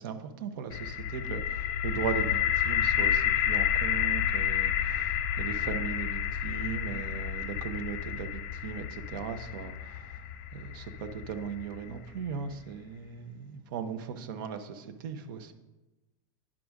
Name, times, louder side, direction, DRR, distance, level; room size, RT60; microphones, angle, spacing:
voice 1, 0.0-10.1 10.5-15.5, right 7 dB, 65° right, 8 dB, 0.8 m, -38 dB
sound 1, 0.7-12.5, left 9 dB, 45° left, 0.5 m, -30 dB
10.0 x 5.0 x 3.6 m, 1.1 s
supercardioid pair, 145°, 12 cm